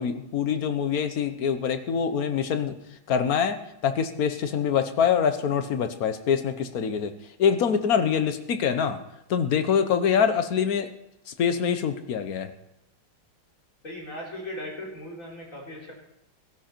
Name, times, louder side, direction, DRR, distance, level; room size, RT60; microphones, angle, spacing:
voice 1, 0.0-2.8 3.1-7.1 7.4-9.0 9.3-10.9 11.3-12.5, left 7 dB, 55° left, 9 dB, 1.3 m, -25 dB
voice 2, 13.8-15.9, left 1 dB, 40° left, -3 dB, 4.5 m, -38 dB
17.0 x 13.0 x 4.5 m, 0.84 s
omnidirectional pair, 2.2 m